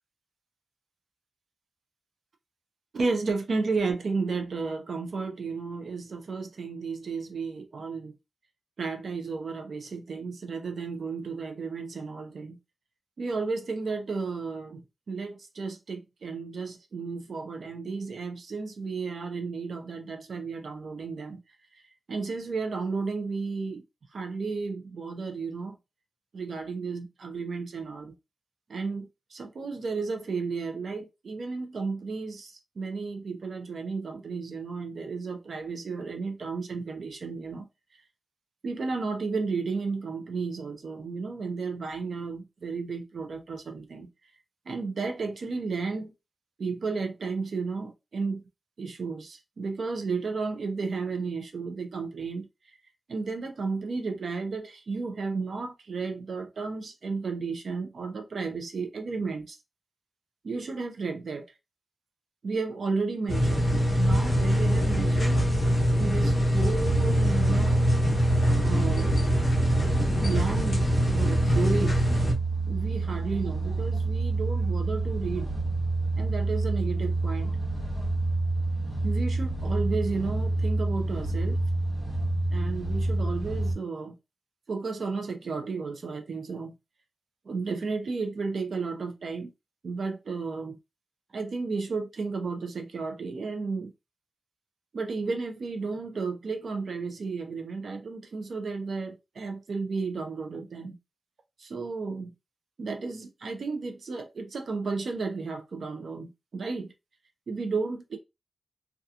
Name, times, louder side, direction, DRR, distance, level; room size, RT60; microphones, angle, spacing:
voice 1, 2.9-8.1 8.8-12.6 13.2-14.8 15.1-21.4 21.7-21.8 22.1-23.8 24.1-25.8 26.3-28.2 28.7-37.7 38.6-44.1 44.7-46.1 46.6-48.4 48.8-52.8 53.1-59.6 60.4-61.5 62.4-65.4 66.0-67.8 68.5-69.3 70.1-71.9 72.7-75.5 76.2-77.6 79.0-81.6 82.5-84.2 84.7-86.7 87.5-89.5 89.8-90.8 91.3-93.9 94.9-101.0 101.6-102.3 102.8-106.9 107.5-108.2, right 4 dB, 65° right, 0.5 m, -33 dB
sound 1, 63.3-72.3, equal, 30° left, 0.8 m, -23 dB
sound 2, 66.8-83.8, right 3 dB, 40° right, 1.2 m, -28 dB
2.7 x 2.3 x 2.3 m
wide cardioid pair, 135°, 0 cm